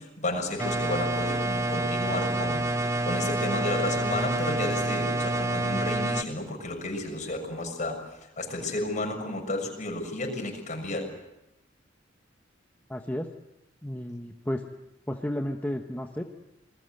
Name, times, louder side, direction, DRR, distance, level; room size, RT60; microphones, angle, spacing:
voice 1, 0.0-8.0 8.4-11.1, left 2 dB, 40° left, 3 dB, 6.7 m, -32 dB
sound 1, 0.6-6.2, right 2 dB, 15° right, 0.9 m, -28 dB
voice 2, 12.9-13.3 13.8-14.6 15.1-16.2, left 1 dB, 10° left, 3 dB, 1.1 m, -32 dB
28.5 x 21.0 x 7.9 m, 0.91 s
head